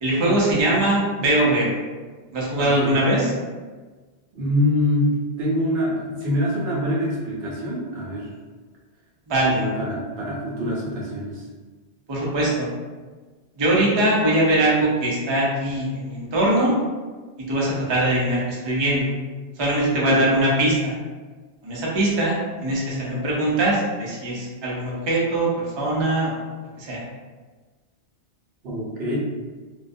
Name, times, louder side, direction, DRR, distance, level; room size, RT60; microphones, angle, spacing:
voice 1, 0.0-1.7 2.3-3.3 9.3-9.6 12.1-12.7 13.6-16.7 17.5-19.1 19.6-20.9 21.6-22.3 22.6-25.5 25.8-26.4 26.8-27.0, right 1 dB, 35° right, -5 dB, 0.5 m, -21 dB
voice 2, 2.6-3.0 4.3-8.3 9.5-11.5 19.9-20.3 28.6-29.2, left 1 dB, 75° right, -4 dB, 0.9 m, -25 dB
2.3 x 2.1 x 2.6 m, 1.3 s
omnidirectional pair, 1.1 m